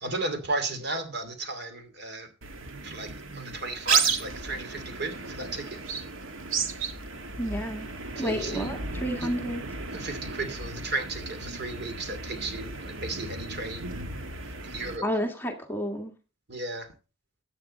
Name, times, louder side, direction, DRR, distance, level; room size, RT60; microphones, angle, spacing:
voice 1, 0.0-2.3 2.8-5.8 8.2-8.7 9.2-9.3 9.9-13.8 14.6-15.0 16.5-16.9, right 3 dB, 55° right, 8 dB, 2.5 m, -34 dB
sound 1, 2.4-15.0, right 5 dB, 85° right, 1.7 m, -34 dB
voice 2, 7.4-7.9 8.1-9.6 15.0-16.1, equal, 10° left, 3 dB, 1.7 m, -30 dB
14.5 x 8.8 x 4.2 m, 0.33 s
head